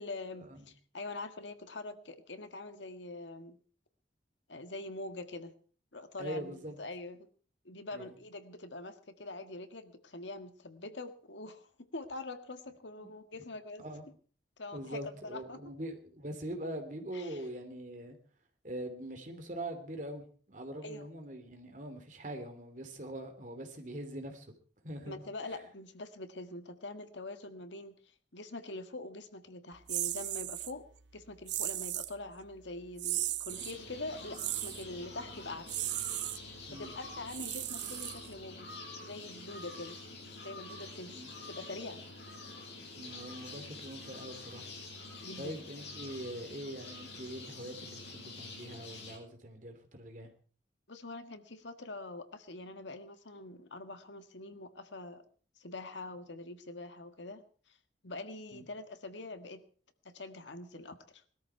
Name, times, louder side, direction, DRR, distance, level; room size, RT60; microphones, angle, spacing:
voice 1, 0.0-3.6 4.5-5.5 5.9-7.3 7.7-13.8 14.6-15.0 15.3-15.6 17.1-17.4 20.8-21.1 25.1-28.0 28.3-30.8 31.1-35.8 36.7-38.7 39.0-40.0 40.4-42.0 45.2-45.6 50.9-55.2 55.6-57.8 58.0-59.6 60.1-61.2, left 2 dB, 90° left, 9 dB, 1.7 m, -44 dB
voice 2, 6.2-6.8 7.9-8.1 13.0-13.1 13.8-14.1 14.7-18.2 18.6-24.5 24.8-25.2 25.5-25.6 36.7-36.9 41.1-41.3 43.0-44.7 45.4-50.3 58.5-58.6, right 1 dB, 45° right, 6 dB, 2.9 m, -43 dB
sound 1, 29.9-30.7 31.5-32.1 33.0-33.8 34.3-34.8 35.7-36.4 37.3-38.4, right 14 dB, 80° right, 0.8 m, -36 dB
sound 2, 33.5-49.1, left 2 dB, 75° left, 5.8 m, -47 dB
20.5 x 13.0 x 4.6 m, 0.42 s
head